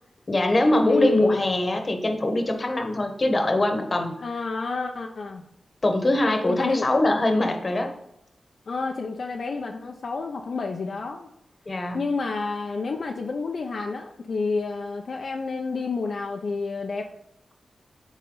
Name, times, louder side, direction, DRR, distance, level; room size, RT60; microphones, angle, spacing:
voice 1, 0.3-4.2 5.8-7.9 11.7-12.0, left 1 dB, 40° left, 4 dB, 1.2 m, -23 dB
voice 2, 0.9-1.4 4.2-5.4 6.5-6.9 8.7-11.3 11.9-17.1, left 4 dB, 70° left, 1 dB, 0.7 m, -29 dB
9.8 x 4.1 x 3.9 m, 0.81 s
cardioid pair, 65°, 0 cm